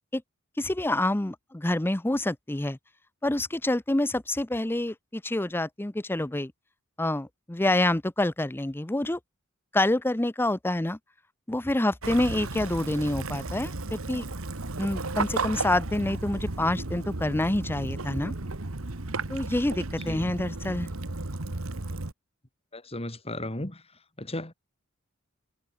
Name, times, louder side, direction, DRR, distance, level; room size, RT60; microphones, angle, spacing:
voice 1, 0.6-2.8 3.2-6.5 7.0-9.2 9.7-11.0 11.5-14.3 14.8-18.3 19.3-20.9, left 1 dB, 10° left, 0.6 m, -27 dB
Waves surf / Splash splatter / Trickle dribble, 12.0-22.1, right 3 dB, 85° right, 1.8 m, -34 dB
voice 2, 22.7-23.8 24.2-24.5, left 1 dB, 30° left, 4.0 m, -35 dB
head